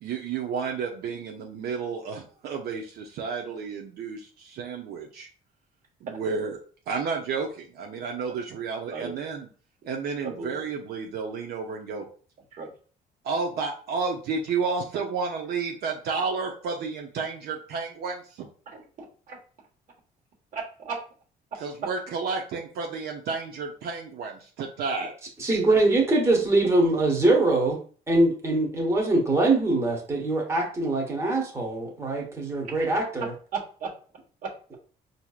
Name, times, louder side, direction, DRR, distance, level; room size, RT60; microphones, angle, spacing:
voice 1, 0.0-5.3 6.0-6.6 6.9-9.5 9.8-12.1 13.2-18.5 21.6-25.2, right 5 dB, 70° right, 1 dB, 0.6 m, -31 dB
voice 2, 10.2-10.6 12.5-12.7 18.7-18.8 19.3-19.4 20.5-21.0 33.5-33.9 34.4-34.8, right 5 dB, 50° right, -1 dB, 1.3 m, -35 dB
voice 3, 25.4-27.8 28.1-33.3, right 2 dB, 15° right, 0 dB, 1.0 m, -23 dB
4.4 x 2.7 x 2.4 m, 0.41 s
cardioid pair, 110°, 17 cm